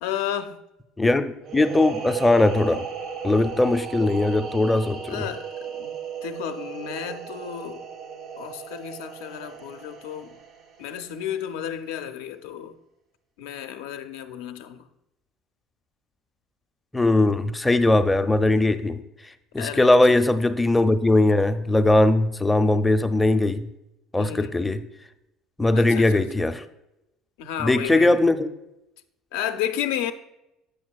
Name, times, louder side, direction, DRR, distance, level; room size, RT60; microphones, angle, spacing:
voice 1, 0.0-0.6 5.1-6.0 6.2-7.9 8.4-10.4 10.8-12.8 13.4-14.8 19.6-19.9 20.2-20.3 24.2-24.6 25.7-26.2 27.4-28.2 29.3-30.1, left 10 dB, 85° left, 0.4 m, -32 dB
voice 2, 1.0-2.8 3.2-5.3 16.9-19.0 19.5-23.7 24.1-24.8 25.6-26.6 27.6-28.5, left 2 dB, 10° left, 0.4 m, -20 dB
sound 1, 1.4-10.9, right 7 dB, 65° right, 0.6 m, -35 dB
8.6 x 6.0 x 2.3 m
supercardioid pair, 85°, 0 cm